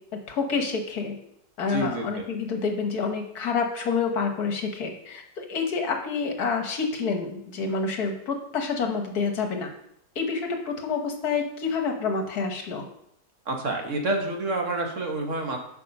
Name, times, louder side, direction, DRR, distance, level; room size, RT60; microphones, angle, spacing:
voice 1, 0.3-1.1 1.6-9.7 10.2-12.8, left 5 dB, 70° left, 4 dB, 1.7 m, -28 dB
voice 2, 1.7-2.2 13.5-15.6, right 2 dB, 50° right, 2 dB, 1.6 m, -28 dB
8.5 x 5.6 x 5.4 m, 0.73 s
omnidirectional pair, 1.7 m